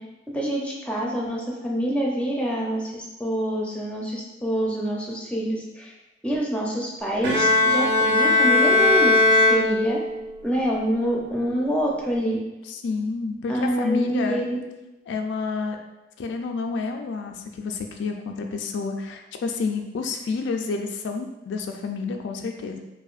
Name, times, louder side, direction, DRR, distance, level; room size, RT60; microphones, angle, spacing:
voice 1, 0.3-5.9 6.2-10.0 10.4-12.4 13.5-14.6, equal, 5° left, -2 dB, 0.5 m, -26 dB
Bowed string instrument, 7.2-10.4, left 3 dB, 65° right, 0.6 m, -19 dB
voice 2, 12.7-14.4 15.1-15.8 16.2-22.8, left 4 dB, 65° left, 4 dB, 0.3 m, -29 dB
4.8 x 2.5 x 2.4 m, 1.0 s
head